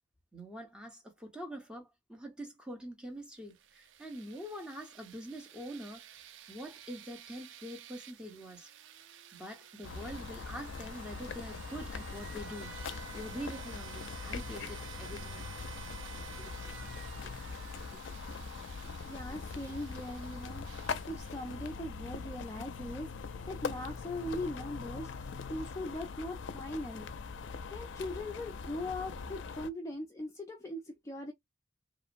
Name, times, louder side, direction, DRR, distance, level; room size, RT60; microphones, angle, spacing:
voice 1, 0.3-6.0 6.5-8.7 9.3-12.8 13.1-15.5 16.4-16.5, equal, 5° right, 0.8 m, -45 dB
sound 1, 3.4-22.1, right 10 dB, 80° right, 0.4 m, -52 dB
sound 2, 9.8-29.7, left 5 dB, 80° left, 0.4 m, -42 dB
voice 2, 19.0-20.7 21.1-27.1 27.7-31.3, left 1 dB, 15° left, 0.4 m, -40 dB
3.0 x 2.0 x 2.5 m
head